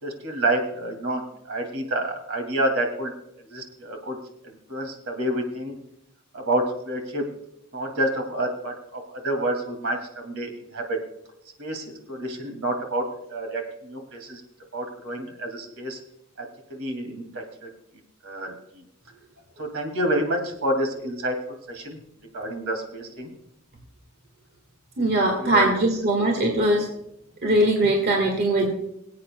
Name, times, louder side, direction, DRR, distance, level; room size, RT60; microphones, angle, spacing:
voice 1, 0.0-3.1 3.4-4.2 4.4-5.8 6.3-7.2 7.7-11.0 11.6-14.4 14.7-16.0 16.7-17.7 18.2-18.5 19.6-21.3 21.7-22.0 22.3-23.3 25.4-25.7, right 1 dB, 70° right, 4 dB, 2.4 m, -28 dB
voice 2, 25.0-26.9 27.4-28.7, right 1 dB, 50° right, 1 dB, 1.7 m, -21 dB
23.5 x 8.5 x 2.2 m, 0.81 s
head